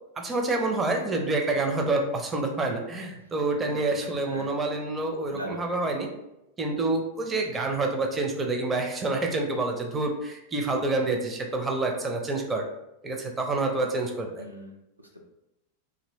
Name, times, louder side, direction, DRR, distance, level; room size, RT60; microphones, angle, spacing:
voice 1, 0.2-6.1 6.6-12.6 13.0-14.4, right 2 dB, 20° right, 2 dB, 0.5 m, -27 dB
voice 2, 3.6-4.5 5.3-5.7 14.4-15.2, right 1 dB, 85° right, 1 dB, 0.4 m, -41 dB
2.8 x 2.6 x 3.0 m, 0.90 s
figure-of-eight pair, 90°, 0 cm